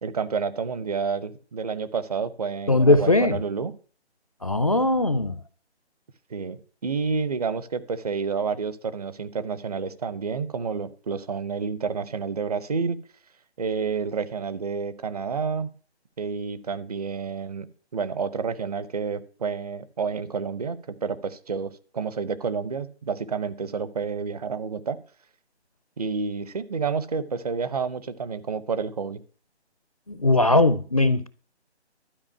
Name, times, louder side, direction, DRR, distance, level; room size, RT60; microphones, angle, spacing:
voice 1, 0.0-3.7 6.3-13.0 13.6-15.7 16.2-17.7 17.9-25.0 26.0-29.2, right 5 dB, 35° right, 0.8 m, -29 dB
voice 2, 2.7-3.4 4.4-5.4 30.1-31.3, left 2 dB, 35° left, 0.4 m, -20 dB
12.0 x 5.1 x 8.7 m
figure-of-eight pair, 150°, 34 cm